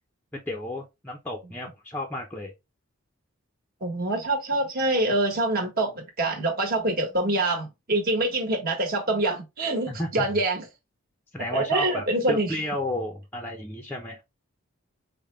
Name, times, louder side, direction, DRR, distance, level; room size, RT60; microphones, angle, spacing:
voice 1, 0.3-2.5 9.9-10.3 11.3-14.2, left 1 dB, 10° left, 0.6 m, -32 dB
voice 2, 3.8-10.7 11.5-12.6, right 2 dB, 40° right, 1.3 m, -25 dB
5.1 x 2.2 x 3.1 m
head